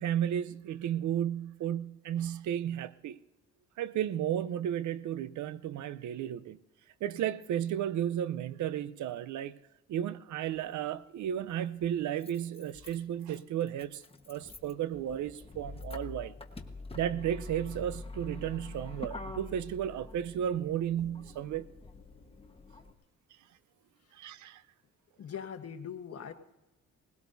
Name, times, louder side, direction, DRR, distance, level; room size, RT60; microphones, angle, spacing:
voice 1, 0.0-3.2 3.8-6.6 7.0-9.6 9.9-16.3 16.9-21.7 24.1-24.6, right 10 dB, 70° right, 0.7 m, -33 dB
Motor vehicle (road), 10.6-10.7 11.8-22.9, left 3 dB, 20° left, 1.3 m, -46 dB
voice 2, 25.2-26.3, left 8 dB, 50° left, 1.4 m, -41 dB
20.0 x 16.5 x 2.7 m
cardioid pair, 90°, 30 cm